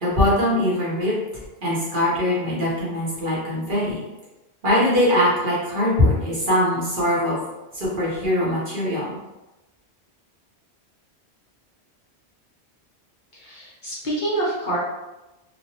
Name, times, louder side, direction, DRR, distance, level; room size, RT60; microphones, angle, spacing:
voice 1, 0.0-1.1 1.6-4.0 4.6-7.4 7.7-9.2, left 1 dB, 50° right, -7 dB, 1.0 m, -21 dB
voice 2, 13.3-14.8, right 1 dB, 45° left, -7 dB, 1.0 m, -27 dB
3.1 x 2.3 x 2.7 m, 1.0 s
omnidirectional pair, 1.1 m